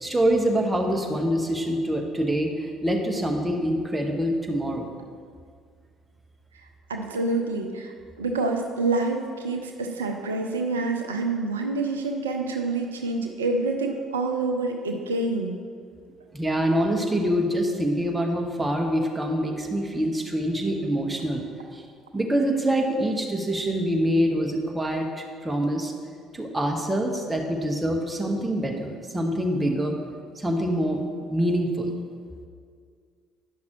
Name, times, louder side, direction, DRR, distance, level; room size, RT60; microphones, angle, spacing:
voice 1, 0.0-4.9 16.3-21.4 21.7-21.8 22.1-25.9 26.3-30.0 30.4-31.0 31.3-31.9, equal, 15° right, 1 dB, 1.1 m, -25 dB
voice 2, 6.9-15.6, right 3 dB, 85° right, 3 dB, 0.4 m, -27 dB
10.0 x 5.9 x 3.0 m, 2.1 s
hypercardioid pair, 55°, 0 cm